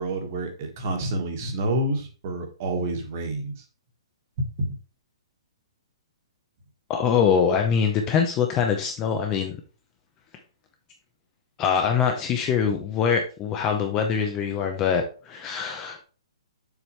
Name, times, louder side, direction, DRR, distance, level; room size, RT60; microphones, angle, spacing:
voice 1, 0.0-3.6 4.4-4.7, right 1 dB, 25° right, 1.5 m, -28 dB
voice 2, 6.9-9.6 11.6-16.0, left 7 dB, 15° left, 0.5 m, -23 dB
7.1 x 6.0 x 3.1 m
hypercardioid pair, 180°, 3 cm